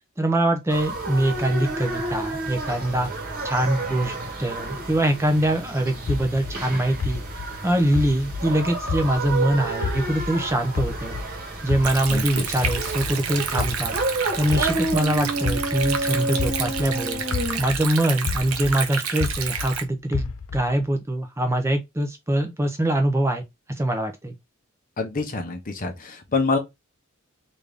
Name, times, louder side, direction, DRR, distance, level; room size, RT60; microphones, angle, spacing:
voice 1, 0.2-3.1 3.4-7.2 7.6-11.2 11.6-14.0 14.4-17.2 17.6-23.4 23.7-24.3, right 1 dB, 15° right, 0.5 m, -23 dB
sound 1, 0.7-17.6, right 2 dB, 45° right, 1.2 m, -30 dB
sound 2, 6.1-9.5 9.8-12.3 12.6-17.0 17.3-19.8 20.1-20.8, left 5 dB, 70° left, 0.4 m, -31 dB
Stream, 11.8-19.8, right 7 dB, 85° right, 0.7 m, -30 dB
voice 2, 12.1-12.4 25.0-26.6, left 3 dB, 40° left, 0.8 m, -26 dB
3.5 x 2.6 x 3.4 m
head